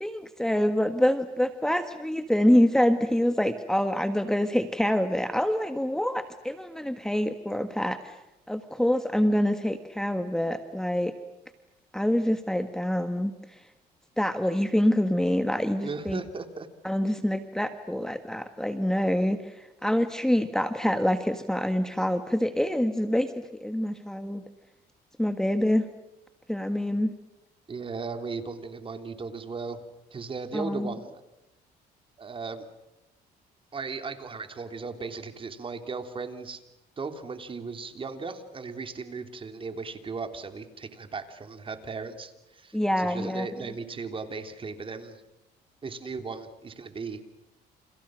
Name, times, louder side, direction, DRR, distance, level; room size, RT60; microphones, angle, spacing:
voice 1, 0.0-8.1 8.5-11.1 11.9-13.3 14.2-16.2 16.8-24.4 25.2-25.8 26.5-27.1 30.5-30.9 42.7-43.5, equal, 5° left, 8 dB, 1.6 m, -26 dB
voice 2, 15.8-16.7 27.7-29.8 30.1-31.2 32.2-32.7 33.7-36.6 37.0-45.2 45.8-47.2, right 4 dB, 30° right, 8 dB, 3.3 m, -37 dB
30.0 x 29.0 x 6.4 m, 0.92 s
cardioid pair, 110°, 17 cm